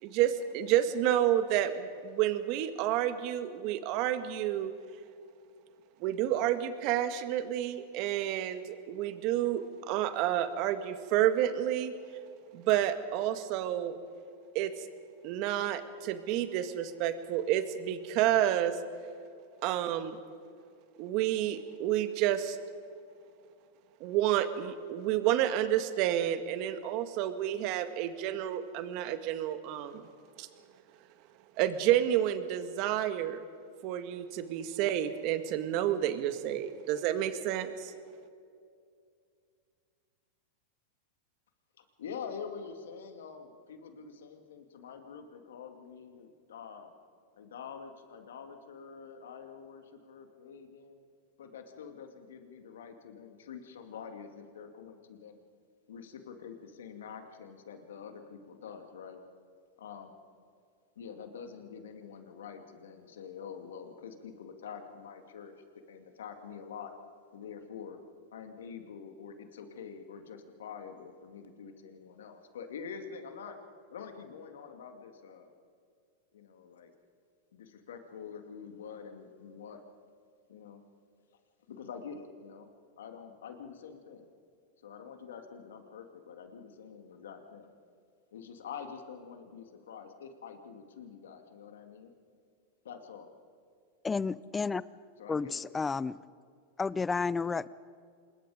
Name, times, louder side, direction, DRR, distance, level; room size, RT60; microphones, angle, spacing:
voice 1, 0.0-4.7 6.0-11.9 12.5-14.0 14.5-14.7 15.2-18.8 19.6-20.2 21.0-22.6 24.0-30.0 30.4-30.5 31.6-33.4 33.8-37.9, right 12 dB, 50° right, 10 dB, 1.7 m, -30 dB
voice 2, 41.8-46.9 47.3-51.0 51.4-55.4 55.9-59.2 59.8-60.1 61.0-65.5 65.9-66.9 67.3-68.0 68.3-73.6 73.9-75.5 76.3-76.9 77.5-79.8 80.5-80.8 81.7-82.7 83.0-84.3 84.8-87.7 88.3-92.1 92.8-93.3 95.2-95.6, left 6 dB, 85° left, 6 dB, 2.4 m, -46 dB
voice 3, 94.0-94.8 95.3-96.2 96.8-97.7, left 4 dB, 15° left, 19 dB, 0.5 m, -31 dB
26.5 x 21.5 x 5.1 m, 2.3 s
hypercardioid pair, 115°, 0 cm